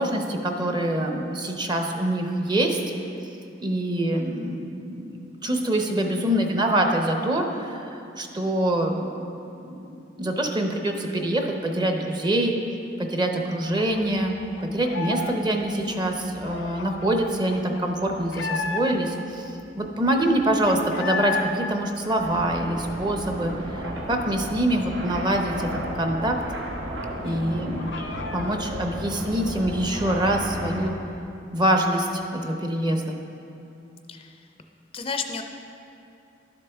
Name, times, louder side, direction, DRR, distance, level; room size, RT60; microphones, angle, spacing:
voice 1, 0.0-2.8 3.6-9.3 9.7-9.9 10.2-12.6 13.0-19.5 19.8-23.8 24.1-25.7 26.0-26.4 27.2-27.9 28.3-30.9 31.5-33.2, right 1 dB, 25° right, 3 dB, 0.7 m, -25 dB
sound 1, 13.8-15.4 15.6-19.2 19.6-19.7 19.9-21.5 21.8-23.5 23.9-24.0 24.3-26.7 27.0-27.1 27.4-28.6, left 3 dB, 85° left, 0.5 m, -34 dB
sound 2, 22.2-30.9, equal, 85° right, 1.0 m, -34 dB
voice 2, 27.2-27.6 34.1-34.5 34.9-35.4, left 4 dB, 30° left, 6 dB, 0.4 m, -33 dB
11.5 x 6.7 x 3.4 m, 2.8 s
head